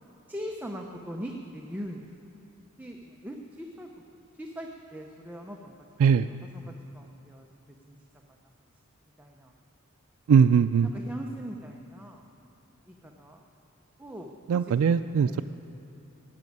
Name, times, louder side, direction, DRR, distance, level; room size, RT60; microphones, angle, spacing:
voice 1, 0.3-2.1 2.8-3.9 4.3-5.7 6.3-8.0 9.2-9.5 10.3-10.5 10.9-12.2 12.9-13.4 14.0-14.3 14.7-15.4, equal, 10° right, 1 dB, 0.7 m, -41 dB
voice 2, 10.3-10.9 14.5-15.4, right 6 dB, 80° right, 8 dB, 0.3 m, -20 dB
12.5 x 8.3 x 9.3 m, 2.9 s
head